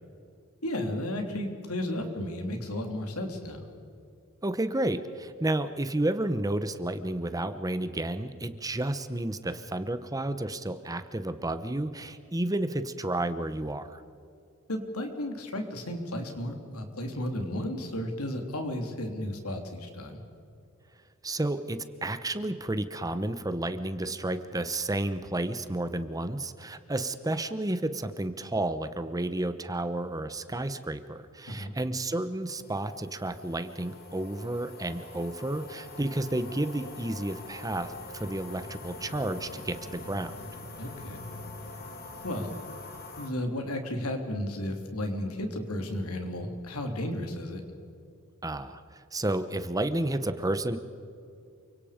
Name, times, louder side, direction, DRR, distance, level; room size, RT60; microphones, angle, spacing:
voice 1, 0.6-3.6 14.7-20.2 31.5-31.7 40.8-41.2 42.2-42.5 43.2-47.6, left 1 dB, 80° left, 4 dB, 3.3 m, -33 dB
voice 2, 4.4-14.0 21.2-40.3 48.4-50.8, right 1 dB, 15° right, 11 dB, 0.9 m, -31 dB
sound 1, 32.5-43.3, left 2 dB, 45° left, 3.1 m, -44 dB
29.0 x 25.0 x 5.1 m, 2.4 s
head